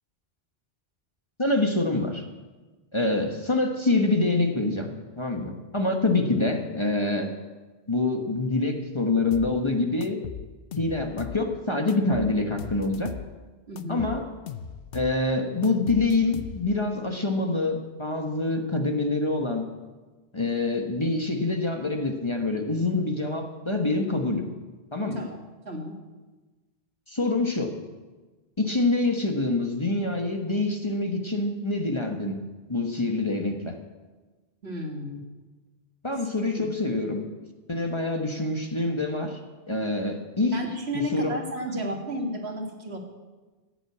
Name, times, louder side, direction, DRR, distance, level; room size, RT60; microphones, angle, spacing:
voice 1, 1.4-2.2 2.9-4.9 5.2-7.3 7.9-10.2 10.8-13.1 13.9-14.3 14.9-19.7 20.3-24.5 24.9-25.2 27.1-27.8 28.6-32.4 32.7-33.8 36.0-37.2 37.7-39.4 39.7-40.6 40.9-41.4, left 2 dB, 25° left, 3 dB, 1.3 m, -26 dB
sound 1, 9.3-9.6 10.0-11.4 11.9-13.3 13.8-15.2 15.6-16.8, left 8 dB, 65° left, 0.9 m, -39 dB
voice 2, 13.7-14.1 25.1-25.4 25.7-26.0 34.6-35.2 36.6-36.7 40.5-43.0, equal, 75° right, 2 dB, 2.2 m, -32 dB
15.0 x 7.8 x 8.5 m, 1.3 s
omnidirectional pair, 1.1 m